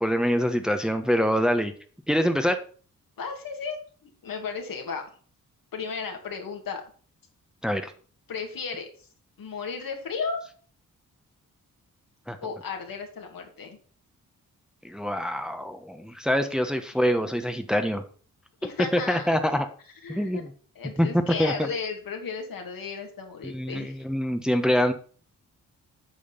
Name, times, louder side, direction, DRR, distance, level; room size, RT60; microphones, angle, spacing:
voice 1, 0.0-1.7 2.1-2.6 7.6-7.9 12.3-12.4 14.8-18.0 18.9-19.7 20.1-20.5 21.0-21.5 23.4-24.9, equal, ahead, 7 dB, 1.2 m, -25 dB
voice 2, 3.2-3.8 4.2-5.1 5.7-6.8 8.3-8.9 9.4-10.4 12.4-13.8 18.6-19.3 20.0-20.4 20.7-24.0, left 5 dB, 70° left, 3 dB, 2.5 m, -34 dB
9.0 x 5.0 x 5.7 m, 0.42 s
supercardioid pair, 50°, 36 cm